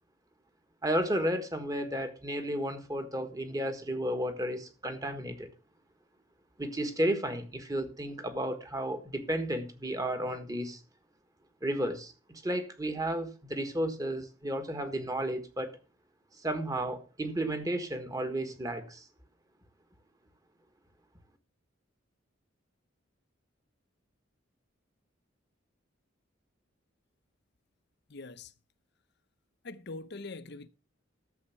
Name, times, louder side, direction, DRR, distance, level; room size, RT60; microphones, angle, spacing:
voice 1, 0.8-5.5 6.6-10.8 11.6-15.8 16.4-19.0, right 1 dB, 20° right, 1.6 m, -33 dB
voice 2, 28.1-28.5 29.6-30.7, left 3 dB, 55° left, 0.8 m, -43 dB
12.5 x 7.4 x 5.8 m
head